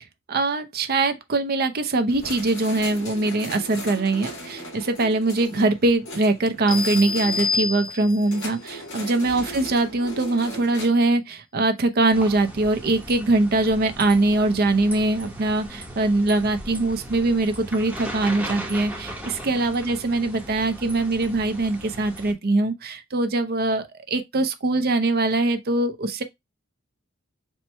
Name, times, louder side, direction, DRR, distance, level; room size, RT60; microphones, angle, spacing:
voice 1, 0.3-26.2, right 2 dB, 45° right, 0.6 m, -22 dB
sound 1, 2.1-10.9, equal, 60° left, 1.9 m, -38 dB
sound 2, 6.7-8.4, left 5 dB, 20° left, 0.8 m, -27 dB
sound 3, 12.1-22.3, equal, 5° right, 0.9 m, -37 dB
4.3 x 2.2 x 4.2 m
head